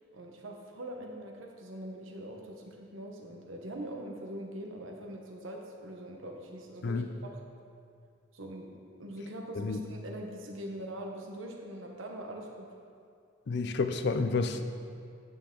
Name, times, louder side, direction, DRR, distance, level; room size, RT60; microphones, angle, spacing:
voice 1, 0.1-7.3 8.3-8.7 9.0-12.7, right 1 dB, 90° right, 1 dB, 1.1 m, -42 dB
voice 2, 13.5-14.6, left 4 dB, 60° left, 8 dB, 0.5 m, -30 dB
9.8 x 6.7 x 3.8 m, 2.4 s
head